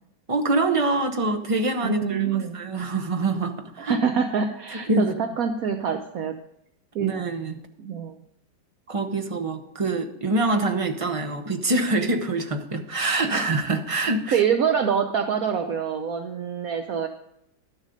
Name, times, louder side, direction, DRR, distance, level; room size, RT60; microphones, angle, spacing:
voice 1, 0.3-3.9 4.9-5.1 7.0-7.6 8.9-14.4, right 2 dB, 30° right, 6 dB, 0.6 m, -25 dB
voice 2, 1.8-2.6 3.8-6.3 6.9-7.1 7.8-8.1 14.3-17.1, right 7 dB, 65° right, 6 dB, 1.1 m, -25 dB
12.0 x 7.3 x 5.1 m, 0.77 s
omnidirectional pair, 1.8 m